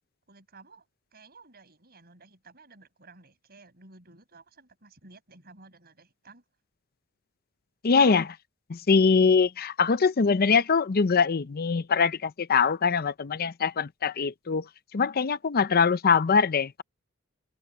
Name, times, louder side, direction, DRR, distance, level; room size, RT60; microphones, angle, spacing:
voice 1, 0.3-0.9 1.1-6.4, right 3 dB, 50° right, 7.4 m, -54 dB
voice 2, 7.8-8.4 8.7-14.7 14.9-16.8, left 5 dB, 45° left, 0.6 m, -23 dB
head